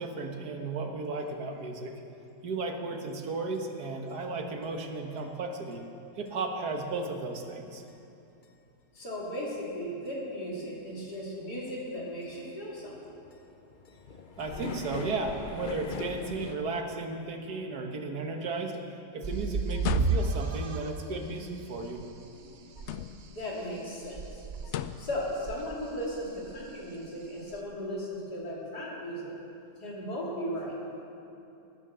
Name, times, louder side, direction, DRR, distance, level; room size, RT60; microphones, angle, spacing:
voice 1, 0.0-1.9 2.4-5.8 6.2-7.8 14.4-18.8 19.1-22.0, right 3 dB, 75° right, 3 dB, 1.9 m, -34 dB
sound 1, 3.5-3.6 4.1-4.2 4.6-4.7 5.2-5.3 5.7-5.8 6.3-6.4 6.8-6.9 7.3-7.4 7.9-8.0 8.4-8.5 9.0-9.1 9.5-9.6 10.1-10.2 10.6-10.7 11.1-11.4 11.7-11.8 12.1-16.6, left 4 dB, 50° left, 0.6 m, -41 dB
voice 2, 8.9-13.0 23.3-24.4 24.7-29.3 29.8-30.7, equal, 75° left, -5 dB, 3.7 m, -36 dB
sound 2, 19.2-20.9 22.0-22.1 22.4-22.5 22.8-23.2 24.1-24.8 25.2-25.7 26.4-26.8 27.5-27.6, right 4 dB, 60° right, 0.5 m, -31 dB
sound 3, 19.7-20.6 22.8-23.4 24.6-25.2, left 10 dB, 90° left, 0.6 m, -35 dB
18.5 x 9.5 x 6.9 m, 2.8 s
omnidirectional pair, 1.7 m